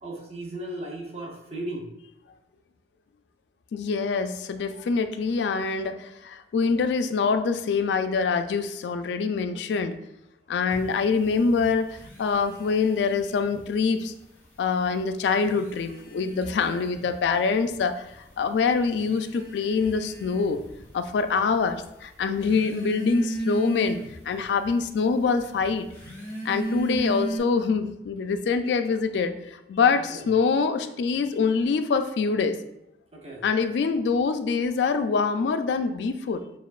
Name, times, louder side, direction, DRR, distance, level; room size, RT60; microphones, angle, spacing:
voice 1, 0.0-1.9 16.4-16.8 29.9-30.3 33.1-33.5, right 1 dB, 35° right, -1 dB, 0.8 m, -37 dB
voice 2, 3.7-10.0 10.5-11.9 12.2-14.1 14.6-20.6 20.9-24.0 24.3-25.9 26.4-32.6 33.4-36.4, left 5 dB, 75° left, 9 dB, 0.3 m, -25 dB
sound 1, 10.7-13.8 14.1-14.8 15.3-27.4, right 2 dB, 15° left, 0.8 m, -36 dB
7.1 x 2.4 x 2.4 m, 0.83 s
head